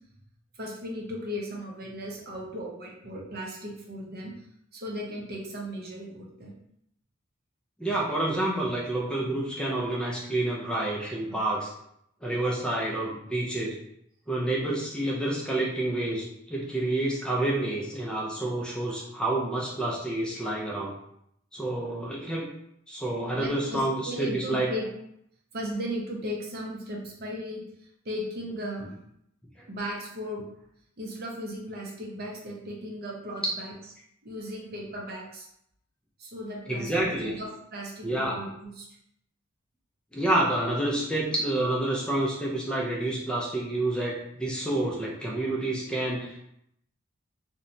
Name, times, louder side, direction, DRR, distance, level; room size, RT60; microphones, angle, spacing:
voice 1, 0.6-4.3 4.7-6.5 11.3-11.4 23.3-24.9 25.5-27.6 28.1-28.9 29.7-30.4 31.0-33.7 34.2-35.5 36.2-38.9, equal, 50° right, -1 dB, 0.6 m, -36 dB
voice 2, 7.8-11.7 12.2-13.8 14.3-20.9 21.5-22.5 22.9-24.7 36.7-37.3 38.0-38.4 40.1-46.4, right 1 dB, 5° left, -4 dB, 0.4 m, -28 dB
2.8 x 2.1 x 2.6 m, 0.74 s
head